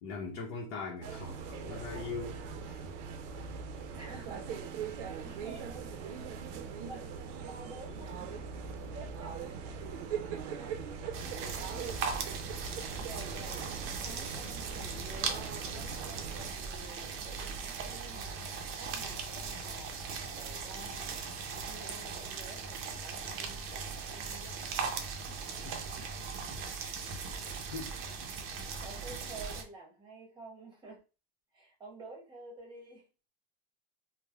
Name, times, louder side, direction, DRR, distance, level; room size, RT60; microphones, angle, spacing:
voice 1, 0.0-2.9 11.9-12.1 25.6-25.8 27.7-27.9, left 4 dB, 80° left, 0.7 m, -41 dB
sound 1, 1.0-16.5, right 6 dB, 85° right, 0.5 m, -41 dB
voice 2, 3.9-4.6 4.9-6.2 6.8-8.3 8.8-9.8 10.1-12.1 12.6-21.1 21.7-24.5 27.3-27.5 28.6-31.0 31.5-33.0, right 2 dB, 15° right, 0.9 m, -51 dB
sound 2, 11.1-29.6, right 5 dB, 40° right, 0.5 m, -39 dB
3.2 x 2.1 x 2.2 m
supercardioid pair, 140°, 35 cm